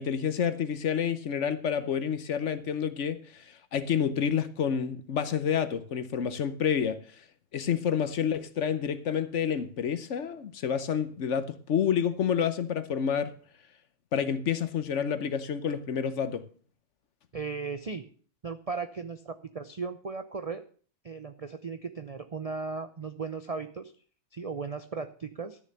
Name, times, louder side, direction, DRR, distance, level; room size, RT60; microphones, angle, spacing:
voice 1, 0.0-7.0 7.5-13.3 14.1-16.4, left 8 dB, 55° left, 1.1 m, -29 dB
voice 2, 17.3-18.1 18.4-20.6 21.0-23.9 24.3-25.6, right 4 dB, 70° right, 0.3 m, -36 dB
12.0 x 6.8 x 6.5 m
omnidirectional pair, 1.6 m